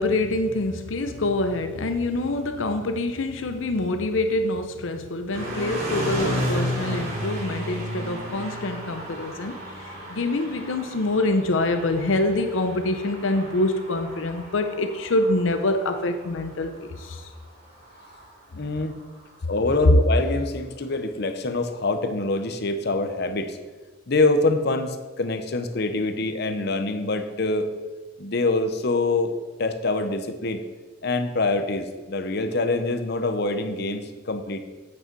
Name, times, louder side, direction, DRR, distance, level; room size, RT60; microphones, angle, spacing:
voice 1, 0.0-9.6 10.1-17.2, left 2 dB, 80° left, 7 dB, 0.7 m, -25 dB
sound 1, 5.3-19.3, equal, 50° right, 2.9 m, -33 dB
voice 2, 18.5-18.9 19.5-23.6 24.1-27.7 28.2-30.6 31.0-34.6, left 2 dB, 55° left, 7 dB, 0.9 m, -25 dB
8.7 x 8.3 x 4.6 m, 1.3 s
head